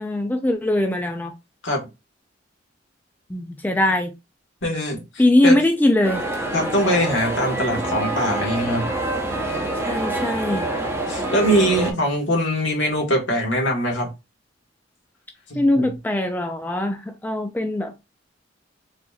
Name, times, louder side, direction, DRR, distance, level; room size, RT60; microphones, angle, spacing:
voice 1, 0.0-1.3 3.3-4.1 5.2-6.2 9.9-10.7 15.6-17.9, left 1 dB, 10° left, 0.3 m, -21 dB
voice 2, 4.6-5.0 5.4-5.6 6.5-8.8 11.1-14.1 15.5-15.9, equal, 70° left, 1.5 m, -22 dB
sound 1, 6.0-11.9, right 2 dB, 15° right, 0.8 m, -26 dB
4.2 x 2.8 x 2.3 m
head